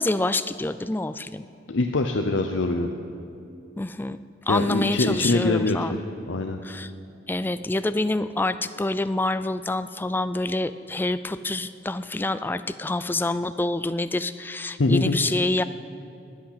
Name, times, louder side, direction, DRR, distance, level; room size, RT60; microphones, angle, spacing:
voice 1, 0.0-1.5 3.8-4.2 4.5-6.0 6.6-6.9 7.3-15.6, left 2 dB, 10° left, 13 dB, 0.3 m, -27 dB
voice 2, 1.7-2.9 4.5-6.0 6.3-6.6 14.8-15.2, left 2 dB, 75° left, 5 dB, 0.7 m, -23 dB
19.0 x 8.6 x 5.7 m, 2.6 s
head